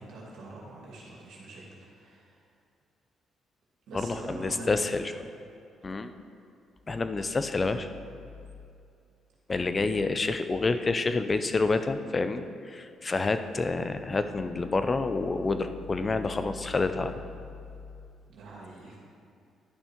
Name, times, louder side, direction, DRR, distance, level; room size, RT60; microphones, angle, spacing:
voice 1, 0.0-2.4 3.9-4.9 18.3-19.0, right 2 dB, 80° right, -4 dB, 2.3 m, -43 dB
voice 2, 3.9-5.1 5.8-6.1 6.9-7.9 9.5-17.1, left 3 dB, 30° left, 9 dB, 0.5 m, -28 dB
11.5 x 5.4 x 4.6 m, 2.5 s
cardioid pair, 90°, 0 cm